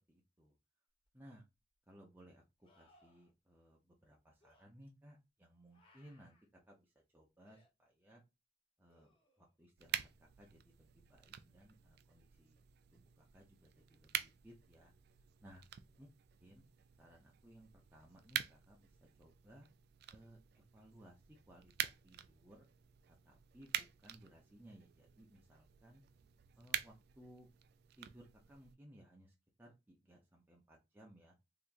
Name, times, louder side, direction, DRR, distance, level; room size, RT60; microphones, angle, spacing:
voice 1, 0.1-0.6 1.1-1.4 1.9-6.4 6.7-8.2 8.8-9.1 9.4-12.6 12.9-14.9 15.4-15.6 16.0-16.1 16.4-16.6 17.0-19.7 20.1-22.7 23.0-26.0 26.6-27.5 28.0-31.4, equal, 10° right, -1 dB, 0.7 m, -61 dB
sound 1, 1.0-1.1 2.6-3.3 4.4-4.7 5.7-6.5 7.4-7.7 8.9-9.6 12.7-12.8, left 2 dB, 30° left, 1.0 m, -70 dB
sound 2, 9.8-28.8, right 11 dB, 55° right, 0.4 m, -47 dB
3.5 x 2.9 x 2.5 m, 0.24 s
head